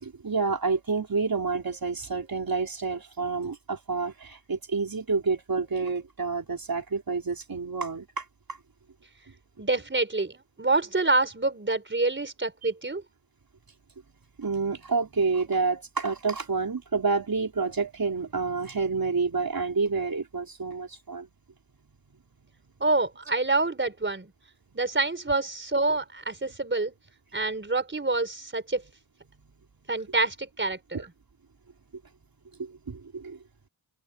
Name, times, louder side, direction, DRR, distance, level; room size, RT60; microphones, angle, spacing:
voice 1, 0.0-8.2 14.4-21.3 32.6-33.4, right 4 dB, 50° right, 4.1 m, -29 dB
voice 2, 9.6-13.0 22.8-24.3 24.7-26.9 27.3-28.8 29.9-31.1, right 3 dB, 25° right, 4.5 m, -27 dB
wide cardioid pair, 115°, 45 cm